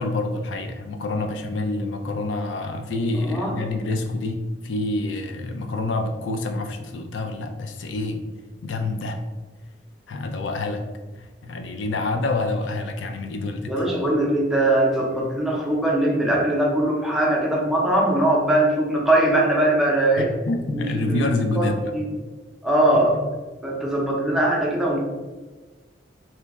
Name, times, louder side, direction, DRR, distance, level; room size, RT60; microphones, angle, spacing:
voice 1, 0.0-8.2 8.6-9.2 10.1-10.8 11.2-13.7 20.2-21.9 23.1-23.3, left 2 dB, 90° left, 5 dB, 0.4 m, -27 dB
voice 2, 3.1-3.6 13.7-20.3 20.7-22.1 22.6-23.2 23.6-25.0, right 1 dB, ahead, -4 dB, 0.6 m, -21 dB
3.0 x 2.2 x 3.4 m, 1.3 s
head